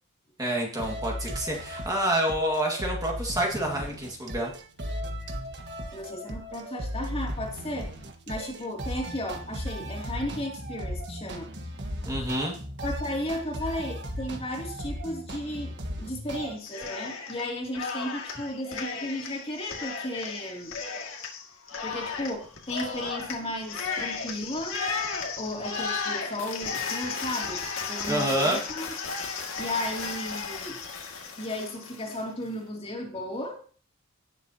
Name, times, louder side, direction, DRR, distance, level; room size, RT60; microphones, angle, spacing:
voice 1, 0.4-4.5 12.0-12.6 28.1-28.6, right 1 dB, 15° right, -1 dB, 1.9 m, -28 dB
sound 1, 0.8-16.5, equal, 55° right, 1.5 m, -36 dB
voice 2, 5.9-7.9 8.3-11.5 12.8-20.8 21.8-24.8 25.4-28.9 29.6-30.8 31.4-33.6, left 1 dB, 25° left, 0 dB, 2.7 m, -34 dB
Cheering, 16.6-17.4 17.7-32.2, left 5 dB, 65° left, 2.1 m, -34 dB
17.5 x 7.4 x 2.8 m, 0.41 s
head